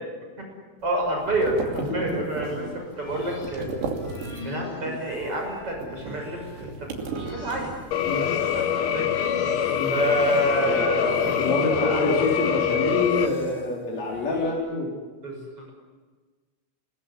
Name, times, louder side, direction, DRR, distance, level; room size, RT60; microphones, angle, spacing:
voice 1, 0.8-2.6 3.0-3.7 4.4-7.7 8.2-9.1 9.9-11.4 11.8-12.0 15.2-15.7, right 1 dB, 35° right, 1 dB, 7.2 m, -28 dB
sound 1, 0.8-4.7 5.0-8.1, right 4 dB, 80° right, 4.9 m, -36 dB
sound 2, 2.4-14.5, left 3 dB, 80° left, 7.0 m, -44 dB
sound 3, 7.9-13.3, left 8 dB, 65° left, 1.8 m, -25 dB
voice 2, 10.6-14.9, left 2 dB, 40° left, -2 dB, 4.7 m, -27 dB
28.0 x 22.0 x 9.8 m, 1.4 s
omnidirectional pair, 4.8 m